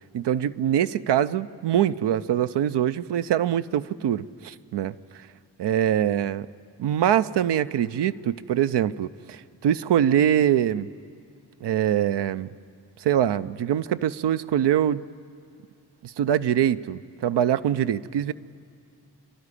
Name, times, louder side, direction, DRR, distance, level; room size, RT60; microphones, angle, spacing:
voice 1, 0.1-5.0 5.6-6.5 6.8-10.9 11.6-12.5 13.0-15.0 16.0-18.3, right 10 dB, 85° right, 13 dB, 0.6 m, -23 dB
27.0 x 12.0 x 9.9 m, 2.5 s
cardioid pair, 40°, 41 cm